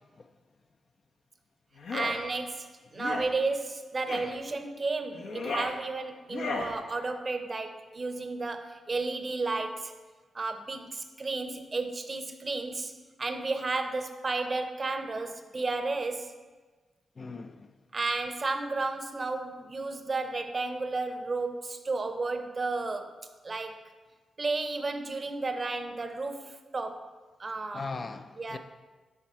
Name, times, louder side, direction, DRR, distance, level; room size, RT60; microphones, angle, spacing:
sound 1, 1.8-2.2 3.0-3.3 4.1-4.3 5.1-5.7 6.3-6.7, left 3 dB, 75° left, 0.9 m, -34 dB
voice 1, 1.9-10.0 10.3-16.3 17.9-23.1 23.4-23.8 24.4-27.1 27.4-27.9 28.4-28.6, right 3 dB, 40° right, 0.7 m, -33 dB
voice 2, 17.2-17.7 27.7-28.6, left 4 dB, 50° left, 0.4 m, -39 dB
7.2 x 5.3 x 4.3 m
supercardioid pair, 45°, 0 cm